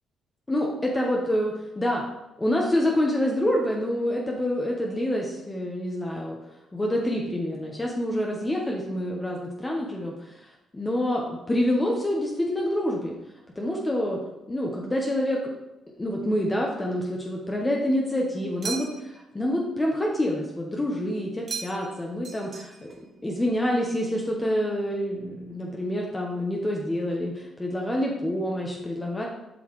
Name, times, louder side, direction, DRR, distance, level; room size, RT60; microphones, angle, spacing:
voice 1, 0.5-2.0 2.4-6.4 6.7-10.5 10.7-13.1 13.6-14.2 14.5-15.4 16.0-22.9 23.2-29.3, left 1 dB, 20° left, -1 dB, 1.0 m, -27 dB
sound 1, 18.6-19.2 21.5-22.0 22.2-23.0, right 5 dB, 45° right, 1.3 m, -36 dB
7.8 x 5.5 x 3.2 m, 0.92 s
cardioid pair, 90°, 0 cm